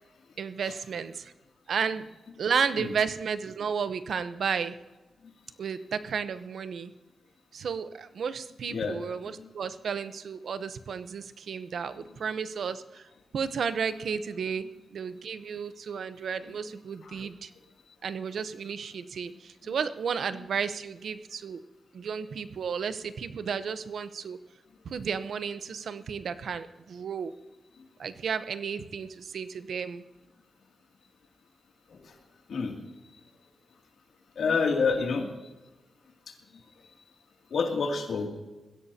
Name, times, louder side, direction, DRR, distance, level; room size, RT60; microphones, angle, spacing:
voice 1, 0.4-1.3 1.7-2.0 2.4-4.8 5.6-6.9 7.5-13.0 13.3-14.6 14.9-17.5 18.0-21.6 21.9-24.4 24.8-27.3 28.0-30.0, right 6 dB, 75° right, 12 dB, 0.8 m, -33 dB
voice 2, 8.7-9.1 9.4-9.5 16.5-16.7 17.0-17.2 19.6-19.7 31.9-32.1 32.5-32.7 34.4-35.3 37.5-38.3, left 4 dB, 80° left, 2 dB, 2.5 m, -28 dB
21.0 x 16.0 x 2.8 m, 1.2 s
wide cardioid pair, 95°, 0 cm